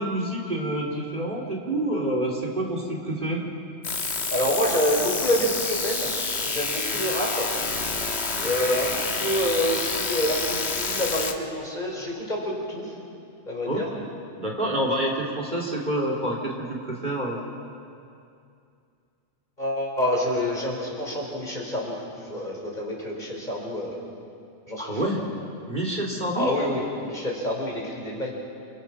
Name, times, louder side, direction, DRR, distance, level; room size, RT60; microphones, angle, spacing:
voice 1, 0.0-3.4 13.7-13.8 14.4-17.4 24.8-25.2 25.7-26.5, right 1 dB, 40° right, 0 dB, 2.9 m, -27 dB
sound 1, 3.8-11.3, left 4 dB, 60° left, 1.8 m, -28 dB
voice 2, 4.3-6.1 6.4-7.5 8.4-12.9 13.4-13.9 19.6-24.0 24.7-25.1 26.3-28.3, equal, 40° left, -2 dB, 5.0 m, -27 dB
29.0 x 23.5 x 5.9 m, 2.5 s
omnidirectional pair, 1.2 m